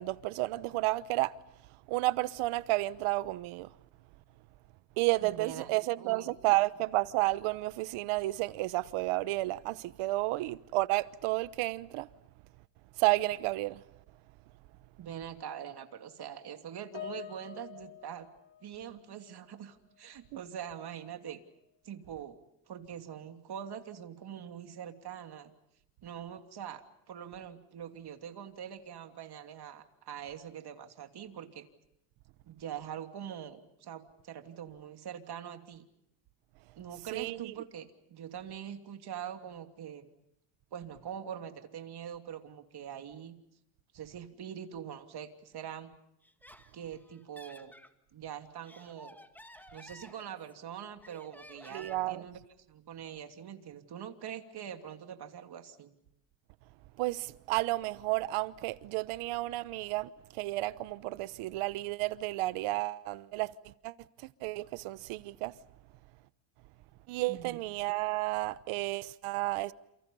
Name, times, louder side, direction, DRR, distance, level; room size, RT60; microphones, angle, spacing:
voice 1, 0.0-1.4 1.9-3.7 5.0-12.1 13.0-13.8 37.1-37.5 51.7-52.2 57.0-65.5 67.1-69.7, right 19 dB, 85° right, 1.1 m, -32 dB
voice 2, 5.2-6.3 15.0-18.3 18.6-21.4 21.8-22.4 22.7-25.5 26.0-26.8 27.1-31.6 32.4-35.8 36.8-40.1 40.7-43.3 43.9-45.9 46.7-47.7 48.1-49.2 49.7-52.4 52.7-55.9 67.3-67.6, right 9 dB, 50° right, 3.0 m, -43 dB
Piano, 16.9-19.6 19.8-20.2 21.0-21.1, left 11 dB, 65° left, 3.9 m, -47 dB
Laughter, 46.2-47.9 48.4-50.6 51.0-52.2, left 1 dB, 5° left, 2.0 m, -53 dB
29.0 x 29.0 x 5.5 m
cardioid pair, 105°, 49 cm